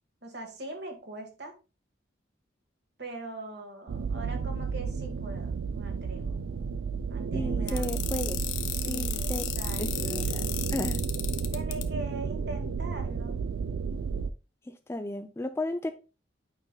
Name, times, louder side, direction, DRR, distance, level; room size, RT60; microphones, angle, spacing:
voice 1, 0.2-1.5 3.0-6.3 7.1-8.2 8.7-10.2 11.5-13.4, right 1 dB, 55° right, 3 dB, 1.6 m, -42 dB
sound 1, 3.9-14.3, right 5 dB, 85° right, 0.4 m, -32 dB
voice 2, 7.3-8.4 8.9-9.4 9.8-10.4 10.7-11.0 14.9-15.9, left 1 dB, 15° left, 7 dB, 0.3 m, -34 dB
sound 2, 7.7-11.8, left 13 dB, 75° left, 0.7 m, -34 dB
8.8 x 5.3 x 2.2 m, 0.31 s
head